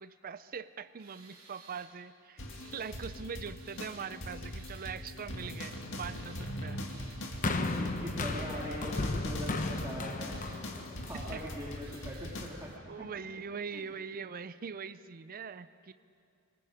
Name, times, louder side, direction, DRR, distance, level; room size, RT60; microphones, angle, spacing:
voice 1, 0.0-2.4 2.7-6.8 11.1-11.4 12.9-15.9, right 6 dB, 40° right, 13 dB, 0.5 m, -42 dB
Tools, 1.0-1.9 2.5-3.1 3.5-4.1 4.4-4.9 5.3-5.8 6.1-6.5 6.8-7.2 7.5-7.9 8.1-9.1 9.4-9.9 10.2-10.6 11.0-11.4 11.8-12.4, right 4 dB, 65° right, 3.9 m, -57 dB
sound 1, 2.4-12.5, left 1 dB, 60° left, 2.2 m, -42 dB
sound 2, 7.4-11.8 12.6-12.7, left 2 dB, 35° left, 1.0 m, -35 dB
voice 2, 7.7-10.5 10.8-12.7 13.7-13.9, equal, 15° right, -6 dB, 2.2 m, -42 dB
25.5 x 20.5 x 5.1 m, 2.4 s
head